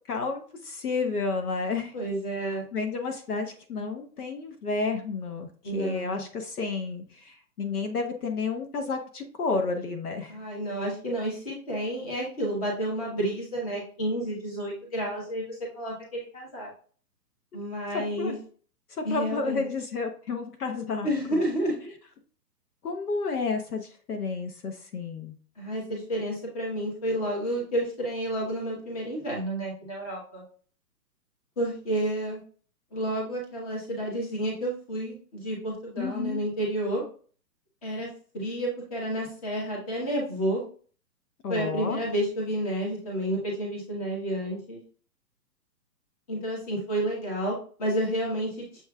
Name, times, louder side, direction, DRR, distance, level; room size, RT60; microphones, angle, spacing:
voice 1, 0.1-1.9 2.5-10.4 17.9-18.4 18.9-21.4 22.8-25.4 36.0-36.4 41.4-42.0, left 4 dB, 65° left, 4 dB, 1.0 m, -31 dB
voice 2, 1.9-2.6 5.6-6.2 10.3-16.7 17.5-18.4 19.0-19.6 21.0-21.9 25.6-30.4 31.6-32.4 32.9-37.0 37.8-38.1 38.3-40.6 41.5-44.8 46.3-48.8, right 1 dB, 20° left, -3 dB, 1.2 m, -30 dB
7.1 x 3.0 x 2.3 m, 0.43 s
hypercardioid pair, 175°, 50 cm